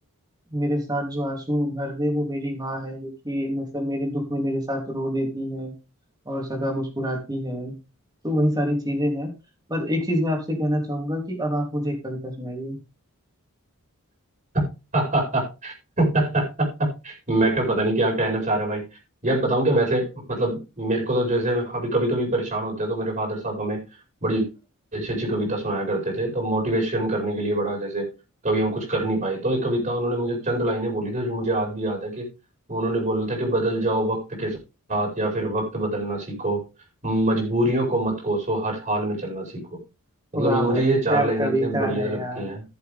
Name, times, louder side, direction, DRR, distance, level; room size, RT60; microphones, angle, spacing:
voice 1, 0.5-5.7 6.2-7.8 8.2-9.3 9.7-12.8 40.3-42.5, equal, 15° right, 3 dB, 3.3 m, -26 dB
voice 2, 14.9-18.8 19.2-23.8 24.2-24.5 24.9-28.1 28.4-32.3 32.7-34.6 34.9-36.6 37.0-39.8 40.3-42.6, right 1 dB, 35° right, 0 dB, 5.0 m, -24 dB
14.5 x 7.5 x 3.6 m, 0.28 s
head